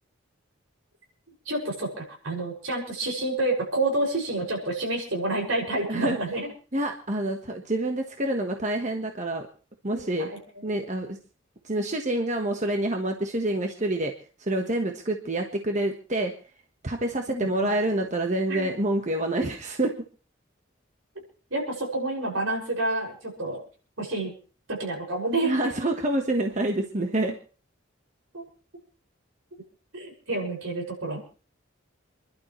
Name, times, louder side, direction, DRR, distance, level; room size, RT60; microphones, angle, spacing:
voice 1, 1.5-6.5 9.9-10.6 17.3-17.8 18.5-18.8 21.5-23.6 24.0-24.3 24.7-25.5 28.3-28.4 29.9-31.2, right 2 dB, 80° right, 0 dB, 6.2 m, -29 dB
voice 2, 5.9-6.2 6.7-9.5 9.8-10.3 10.6-11.2 11.6-14.1 14.4-16.3 16.8-20.0 25.4-27.4 31.2-31.3, right 1 dB, 35° right, 3 dB, 1.3 m, -27 dB
28.5 x 11.5 x 3.2 m, 0.39 s
head